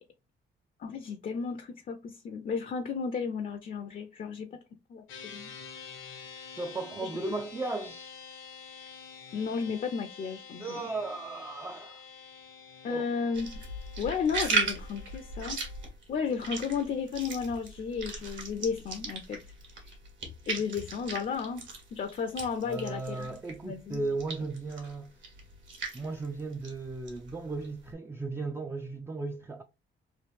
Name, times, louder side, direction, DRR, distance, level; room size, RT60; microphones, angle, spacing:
voice 1, 0.8-4.5 4.9-5.5 9.3-10.8 12.8-13.5 14.0-15.6 16.1-19.4 20.5-23.3 23.6-24.0, left 6 dB, 45° left, 0.5 m, -33 dB
sound 1, 5.1-15.9, left 6 dB, 85° left, 0.8 m, -48 dB
voice 2, 6.5-8.2 10.6-12.0 12.8-13.0 22.6-25.2 25.9-29.6, right 3 dB, 10° right, 0.3 m, -36 dB
sound 2, 13.3-23.6 23.9-27.9, right 4 dB, 70° right, 1.4 m, -37 dB
3.1 x 2.4 x 3.1 m
cardioid pair, 90°, 20 cm